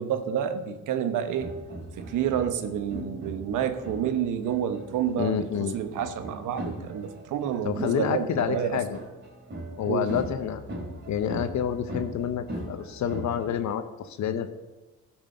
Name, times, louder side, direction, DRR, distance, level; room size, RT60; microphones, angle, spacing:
voice 1, 0.0-1.5 2.0-8.8 9.9-10.1, right 8 dB, 85° right, 9 dB, 1.1 m, -29 dB
sound 1, 1.4-13.5, right 1 dB, 35° right, 3.6 m, -40 dB
voice 2, 5.2-5.7 7.6-9.0 9.8-10.6 11.1-14.5, left 8 dB, 65° left, 9 dB, 0.9 m, -28 dB
13.0 x 6.2 x 6.6 m, 1.2 s
cardioid pair, 90°, 30 cm